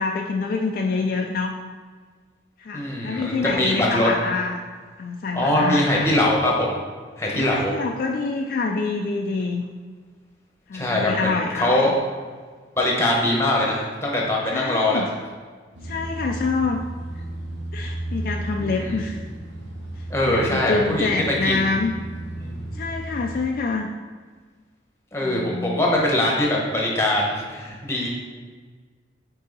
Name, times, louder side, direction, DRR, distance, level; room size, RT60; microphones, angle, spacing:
voice 1, 0.0-1.5 2.6-4.6 5.0-6.1 7.3-9.6 10.7-11.9 14.5-15.1 15.8-16.8 17.7-19.2 20.3-21.9 22.7-23.9 25.2-25.8, left 4 dB, 50° left, 2 dB, 0.3 m, -26 dB
voice 2, 2.7-4.1 5.3-6.8 7.2-7.7 10.7-11.9 12.8-15.0 18.6-19.0 20.1-21.6 22.4-22.8 25.1-28.1, left 1 dB, 15° left, -2 dB, 1.0 m, -22 dB
sound 1, 15.7-23.4, right 1 dB, 85° right, 1.3 m, -34 dB
5.3 x 4.6 x 3.9 m, 1.5 s
head